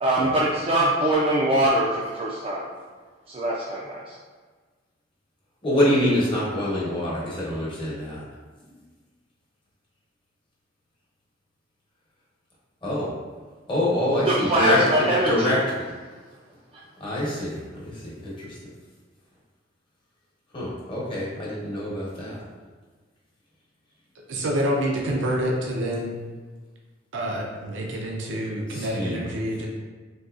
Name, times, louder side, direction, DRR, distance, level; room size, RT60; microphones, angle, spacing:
voice 1, 0.0-2.7 3.3-4.1 14.2-15.5, right 1 dB, 30° right, -5 dB, 0.4 m, -22 dB
voice 2, 5.6-8.2 12.8-13.1 13.7-15.6 17.0-18.6 20.5-22.4 25.1-25.2 28.7-29.3, left 1 dB, 25° left, -6 dB, 1.0 m, -25 dB
voice 3, 24.3-26.2 27.1-29.7, equal, 80° right, -1 dB, 0.5 m, -27 dB
3.9 x 2.7 x 2.4 m, 1.4 s
head